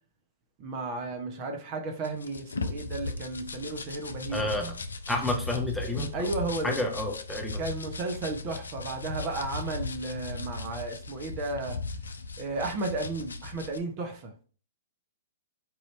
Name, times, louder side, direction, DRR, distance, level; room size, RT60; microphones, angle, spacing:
voice 1, 0.6-4.5 6.1-6.8 7.5-11.8 12.4-14.3, right 2 dB, 35° right, 4 dB, 0.8 m, -34 dB
sound 1, 2.0-13.8, left 3 dB, 85° left, 0.5 m, -37 dB
voice 2, 4.3-4.7 5.1-6.1 6.6-7.6, left 1 dB, 5° left, 0 dB, 0.8 m, -30 dB
4.7 x 2.7 x 3.2 m, 0.39 s
hypercardioid pair, 120°, 0 cm